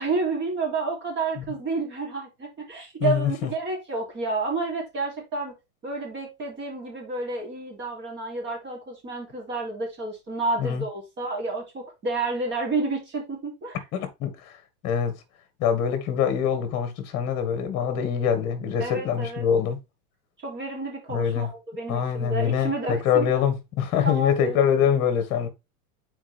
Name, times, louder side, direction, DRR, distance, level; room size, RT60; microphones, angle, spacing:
voice 1, 0.0-5.5 5.8-13.8 18.8-19.5 20.4-23.3 24.0-24.6, right 3 dB, 25° right, 3.0 m, -30 dB
voice 2, 3.0-3.5 10.6-10.8 13.9-14.6 14.8-15.1 15.6-19.8 21.1-21.5 21.9-25.5, left 8 dB, 35° left, 1.8 m, -24 dB
7.2 x 4.6 x 3.4 m
supercardioid pair, 145°, 44 cm